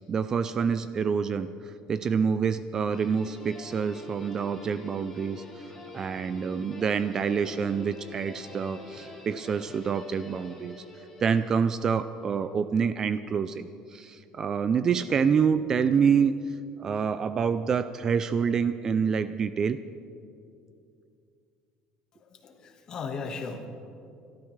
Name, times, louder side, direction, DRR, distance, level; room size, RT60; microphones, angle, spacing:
voice 1, 0.0-5.7 5.9-10.8 11.2-16.3 16.8-19.8, right 6 dB, 25° right, 13 dB, 0.4 m, -27 dB
Guitar, 2.9-12.2, left 1 dB, 10° left, 3.2 m, -45 dB
voice 2, 22.2-23.7, left 5 dB, 35° left, 4 dB, 1.5 m, -37 dB
26.0 x 13.0 x 3.2 m, 2.5 s
cardioid pair, 160°, 2 cm